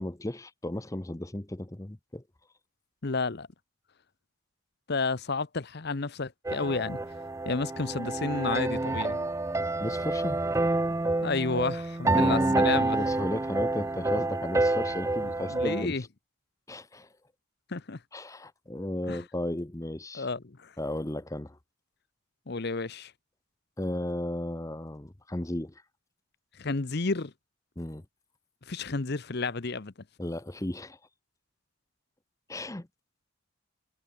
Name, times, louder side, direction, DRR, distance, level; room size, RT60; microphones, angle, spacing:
voice 1, 0.0-2.2 9.8-10.4 12.0-16.1 16.7-17.1 18.1-20.3 20.8-21.6 23.8-25.7 27.8-28.0 30.2-31.0 32.5-32.9, left 1 dB, 15° left, 0.7 m, -34 dB
voice 2, 3.0-3.5 4.9-7.0 7.4-9.2 11.2-13.0 15.2-16.0 17.7-18.0 19.1-19.2 20.1-20.7 22.5-23.1 26.6-27.3 28.7-29.9, left 3 dB, 50° left, 0.8 m, -31 dB
sound 1, 6.4-15.8, right 2 dB, 15° right, 0.3 m, -28 dB
head